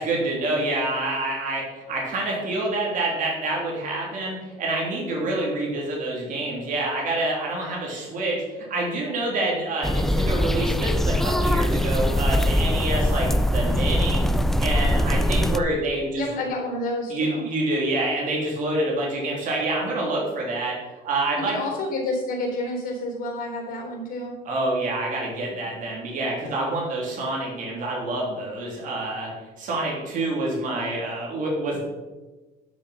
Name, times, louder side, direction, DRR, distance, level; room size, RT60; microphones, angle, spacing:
voice 1, 0.0-14.3 14.6-16.3 17.1-20.8 21.0-21.6 24.4-29.3 29.6-31.8, right 2 dB, 50° right, -2 dB, 3.1 m, -27 dB
sound 1, 9.8-15.6, left 1 dB, ahead, 0.3 m, -22 dB
voice 2, 16.1-17.4 21.3-24.3, left 2 dB, 55° left, 1 dB, 3.9 m, -29 dB
12.0 x 6.4 x 5.7 m, 1.2 s
cardioid pair, 155°, 17 cm